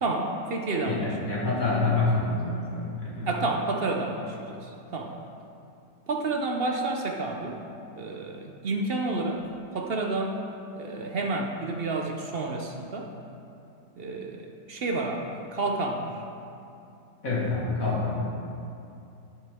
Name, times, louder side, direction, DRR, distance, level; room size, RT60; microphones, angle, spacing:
voice 1, 0.0-1.1 3.3-5.2 6.1-7.6 8.0-10.4 10.8-13.1 14.0-16.2, right 2 dB, 55° right, 2 dB, 0.6 m, -30 dB
voice 2, 0.9-3.3 17.2-18.3, left 3 dB, 50° left, -5 dB, 2.2 m, -27 dB
10.0 x 10.0 x 3.6 m, 2.7 s
omnidirectional pair, 1.9 m